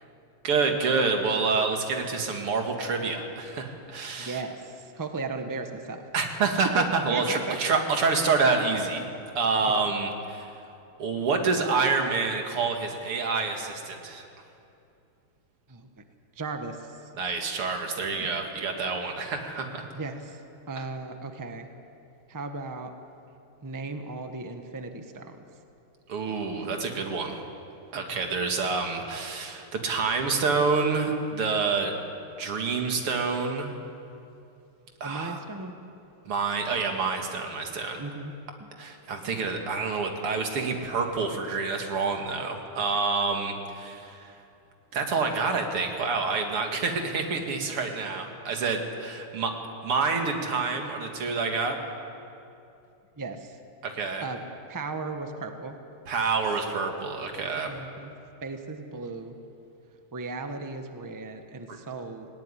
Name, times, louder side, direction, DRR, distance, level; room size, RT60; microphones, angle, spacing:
voice 1, 0.4-4.4 6.1-9.0 9.3-10.5 11.0-14.3 17.2-19.9 26.1-27.4 27.9-31.9 32.4-33.7 35.0-35.4 36.3-38.0 38.8-44.3 44.9-49.5 49.8-51.8 53.8-54.2 56.1-57.8 61.7-61.8, right 4 dB, 90° right, 3 dB, 2.9 m, -27 dB
voice 2, 4.2-6.0 6.6-7.6 9.6-9.9 15.7-15.9 16.4-17.0 18.2-18.3 19.9-20.4 20.7-21.7 22.3-22.9 23.6-25.4 28.1-28.4 35.0-35.7 38.0-38.3 38.6-38.7 53.2-53.6 54.2-55.8 57.6-58.1 58.4-59.3 60.1-62.3, right 3 dB, 15° right, 6 dB, 0.8 m, -36 dB
18.0 x 18.0 x 9.9 m, 2.7 s
omnidirectional pair, 2.4 m